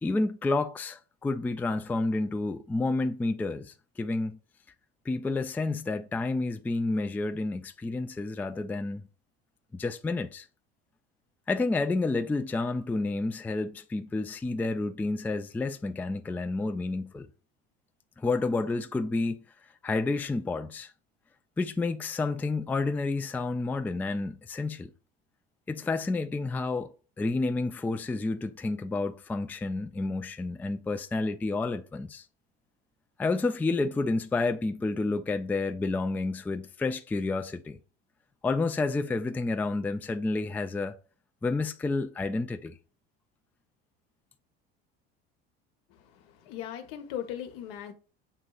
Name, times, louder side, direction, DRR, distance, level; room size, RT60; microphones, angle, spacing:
voice 1, 0.0-4.4 5.1-9.0 9.7-10.5 11.5-17.3 18.2-19.4 19.8-20.9 21.6-24.9 25.7-32.2 33.2-37.8 38.4-41.0 41.4-42.7, left 3 dB, 5° left, 0.3 m, -30 dB
voice 2, 45.9-47.9, left 10 dB, 80° left, 1.0 m, -39 dB
7.6 x 2.9 x 2.4 m
supercardioid pair, 90°, 31 cm